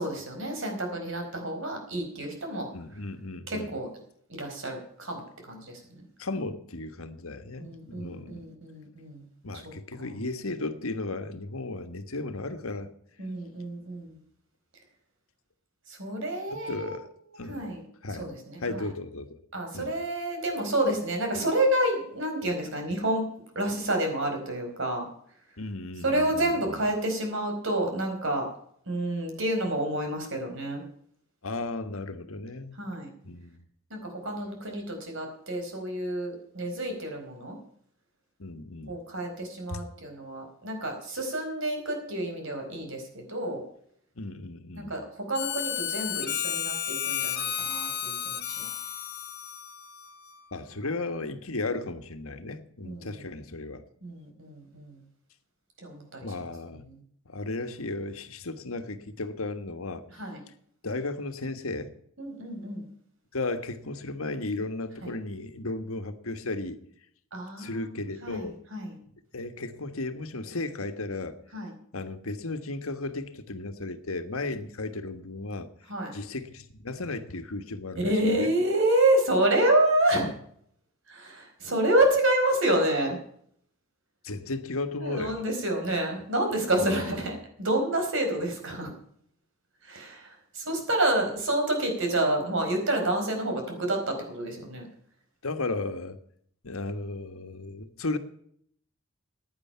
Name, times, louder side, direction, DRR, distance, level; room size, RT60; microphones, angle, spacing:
voice 1, 0.0-2.7 3.5-3.9 4.3-6.0 7.6-9.3 9.6-9.7 10.0-10.1 13.2-14.2 15.9-17.0 17.5-17.8 18.2-18.9 19.5-23.3 23.5-25.1 26.0-28.5 28.9-30.8 32.8-33.1 33.9-37.6 38.9-43.6 44.8-48.7 52.8-53.2 54.0-55.0 55.8-56.3 56.8-57.0 60.2-60.4 62.2-62.8 65.0-65.1 67.3-67.8 68.2-68.9 71.5-71.7 75.9-76.1 77.9-80.3 81.1-83.2 85.0-88.9 89.8-94.9, right 1 dB, 65° right, 4.6 m, -28 dB
voice 2, 2.7-3.7 6.2-8.5 9.4-12.9 16.5-17.7 18.0-18.3 18.6-19.4 19.7-19.9 25.6-26.8 31.4-32.7 33.2-33.6 38.4-38.9 39.7-39.8 44.2-44.9 50.5-53.8 56.2-56.8 57.3-60.1 60.8-61.9 63.3-66.8 67.6-68.6 69.3-71.4 71.9-75.7 76.1-78.5 84.2-85.4 86.8-87.2 95.4-96.2 96.6-98.2, left 2 dB, 80° left, 1.5 m, -35 dB
Harmonica, 45.3-50.5, left 9 dB, 50° left, 1.5 m, -33 dB
15.5 x 10.0 x 5.7 m
head